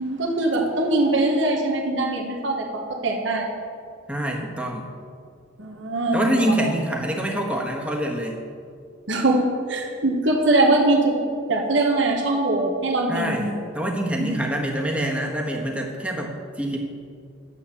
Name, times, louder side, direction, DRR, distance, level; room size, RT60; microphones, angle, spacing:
voice 1, 0.0-3.5 5.6-6.4 9.1-9.4 9.7-11.2 11.5-13.5 14.2-14.4, right 2 dB, 65° right, -1 dB, 1.4 m, -22 dB
voice 2, 4.1-4.9 6.1-8.4 13.1-16.8, right 1 dB, 5° right, -1 dB, 1.3 m, -26 dB
9.8 x 7.9 x 7.0 m, 2.3 s
head